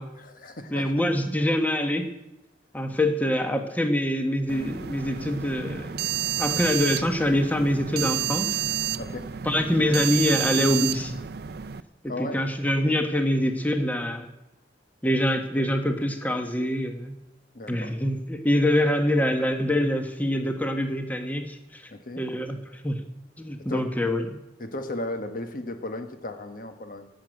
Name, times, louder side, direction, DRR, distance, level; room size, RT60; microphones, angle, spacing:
voice 1, 0.2-0.9 9.0-9.3 12.1-12.6 17.5-17.9 21.9-22.2 23.7-23.9 24.6-27.1, left 2 dB, 55° left, 7 dB, 1.3 m, -35 dB
voice 2, 0.7-2.1 2.7-6.1 6.4-8.6 9.4-11.2 12.0-14.3 15.0-17.1 17.7-21.9 22.2-23.0 23.4-24.3, left 1 dB, 10° left, 6 dB, 1.2 m, -25 dB
sound 1, 4.5-11.8, right 11 dB, 65° right, 0.5 m, -30 dB
11.5 x 7.6 x 9.0 m, 0.92 s
head